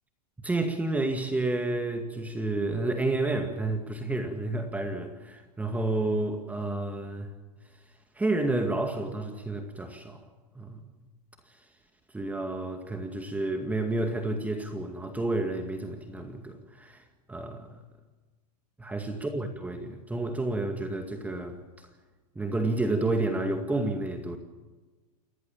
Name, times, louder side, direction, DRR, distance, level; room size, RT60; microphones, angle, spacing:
voice 1, 0.4-7.3 8.2-10.2 10.6-10.8 12.1-17.0 17.3-17.8 18.8-21.6 22.4-24.4, right 2 dB, 5° right, 5 dB, 2.1 m, -30 dB
28.5 x 15.5 x 8.8 m, 1.3 s
hypercardioid pair, 130°, 21 cm